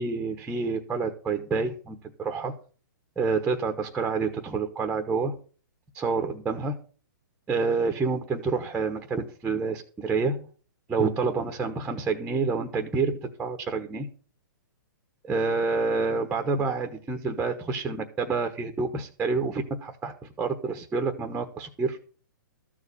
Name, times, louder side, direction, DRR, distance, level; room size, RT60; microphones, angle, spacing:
voice 1, 0.0-2.5 3.2-5.4 5.9-6.8 7.5-10.5 10.9-14.1 15.3-22.0, right 4 dB, 10° right, 6 dB, 1.0 m, -28 dB
14.0 x 4.8 x 8.3 m, 0.39 s
hypercardioid pair, 150°, 11 cm